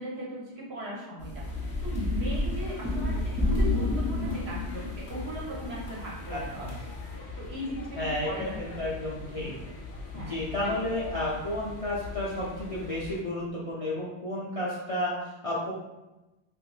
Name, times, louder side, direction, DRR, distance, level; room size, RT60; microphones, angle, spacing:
voice 1, 0.0-1.4 1.8-6.7 7.4-8.6 10.1-10.4, equal, 60° right, -4 dB, 1.1 m, -38 dB
sound 1, 1.2-7.1, left 2 dB, 15° right, 0.4 m, -30 dB
sound 2, 1.4-13.2, left 3 dB, 65° left, 0.8 m, -41 dB
voice 2, 6.3-6.7 7.9-9.5 10.1-15.7, left 1 dB, 45° left, -8 dB, 0.5 m, -32 dB
2.9 x 2.5 x 3.1 m, 1.0 s
omnidirectional pair, 1.2 m